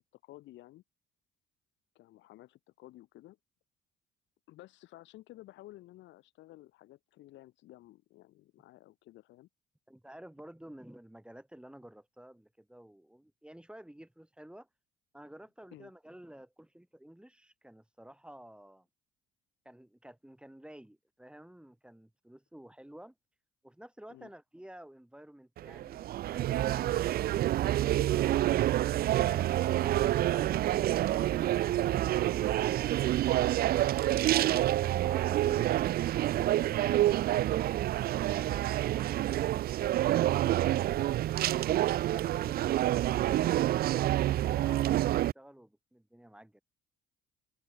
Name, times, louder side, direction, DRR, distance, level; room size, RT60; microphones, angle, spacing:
voice 1, 0.2-0.8 1.9-3.4 4.5-9.5 15.7-15.9 24.1-24.3 29.7-29.9 34.0-34.2 34.5-34.6 35.4-35.6 43.4-43.6, left 16 dB, 75° left, 4.8 m, -53 dB
voice 2, 9.9-14.7 15.1-18.9 19.6-23.1 23.6-28.5 43.2-46.6, right 1 dB, 5° right, 6.1 m, -52 dB
sound 1, 25.6-45.3, right 14 dB, 50° right, 0.4 m, -28 dB
supercardioid pair, 65°, 19 cm